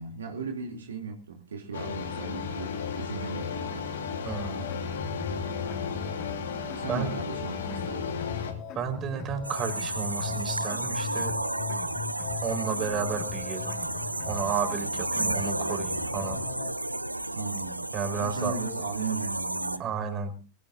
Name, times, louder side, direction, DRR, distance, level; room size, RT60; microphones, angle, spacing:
voice 1, 0.0-3.8 6.7-8.2 15.1-15.5 17.3-17.8 18.2-19.8, right 4 dB, 70° right, 1 dB, 2.9 m, -36 dB
sound 1, 1.7-8.5, left 6 dB, 65° left, 3.3 m, -34 dB
voice 2, 4.2-4.6 6.9-7.1 8.7-11.3 12.4-13.7 14.2-16.4 17.9-18.5 19.8-20.4, right 6 dB, 30° right, 7 dB, 4.8 m, -32 dB
sound 2, 4.3-16.7, left 6 dB, 40° left, 4.6 m, -40 dB
sound 3, 9.4-19.8, right 1 dB, 85° right, 0.7 m, -32 dB
22.5 x 17.0 x 2.7 m, 0.35 s
figure-of-eight pair, 90°, 0 cm